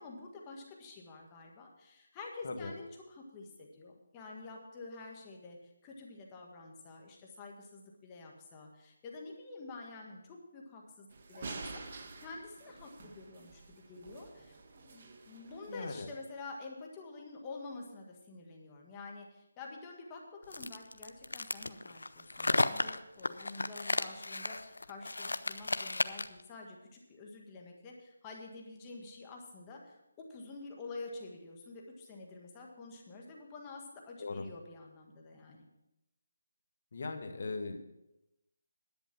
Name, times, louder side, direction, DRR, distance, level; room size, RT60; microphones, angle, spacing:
voice 1, 0.0-35.7, left 3 dB, 15° left, 0 dB, 1.7 m, -48 dB
sound 1, 11.1-16.0, right 3 dB, 40° right, 1.2 m, -48 dB
voice 2, 15.7-16.1 34.2-34.4 36.9-37.8, left 3 dB, 50° left, 5 dB, 1.7 m, -39 dB
sound 2, 20.5-26.4, left 2 dB, 90° left, 0.7 m, -34 dB
11.0 x 8.7 x 6.0 m, 0.90 s
figure-of-eight pair, 165°, 0 cm